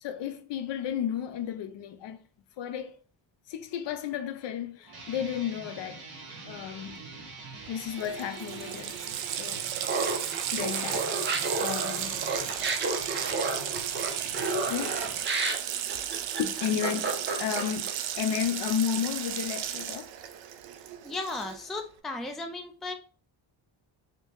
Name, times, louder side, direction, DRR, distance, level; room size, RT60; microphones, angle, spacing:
voice 1, 0.0-2.2 2.6-3.0 3.5-6.0 6.4-7.1 7.7-9.0 9.3-9.7 10.5-12.3 14.7-15.0 16.4-20.1, left 9 dB, 70° left, 0.6 m, -33 dB
sound 1, 4.8-15.2, right 3 dB, 55° right, 1.1 m, -44 dB
Water tap faucet, 7.7-7.8 8.0-21.7, right 10 dB, 80° right, 0.6 m, -34 dB
Laughter, 9.8-17.9, right 3 dB, 25° right, 0.7 m, -31 dB
voice 2, 21.0-22.9, left 2 dB, ahead, 0.3 m, -35 dB
2.9 x 2.7 x 3.5 m
cardioid pair, 120°, 45 cm